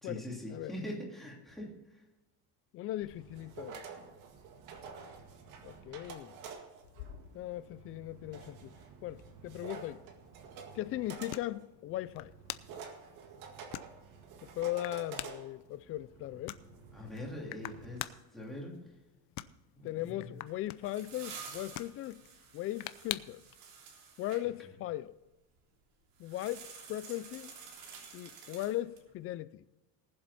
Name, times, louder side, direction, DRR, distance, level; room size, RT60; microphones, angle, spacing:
voice 1, 0.0-1.8 16.9-18.8 19.8-20.4, left 1 dB, ahead, 2.8 m, -42 dB
voice 2, 2.7-3.8 5.6-6.4 7.3-8.8 9.0-10.0 10.7-12.3 14.4-16.6 19.8-22.2 22.5-23.4 24.2-25.1 26.2-27.5 28.1-29.6, left 15 dB, 35° left, 0.4 m, -38 dB
sound 1, 3.0-18.0, right 6 dB, 55° right, 1.9 m, -50 dB
sound 2, 6.8-23.6, left 16 dB, 80° left, 0.8 m, -48 dB
sound 3, 20.5-24.4 26.2-29.1, right 6 dB, 70° right, 3.4 m, -50 dB
19.5 x 7.7 x 4.2 m
cardioid pair, 180°, 38 cm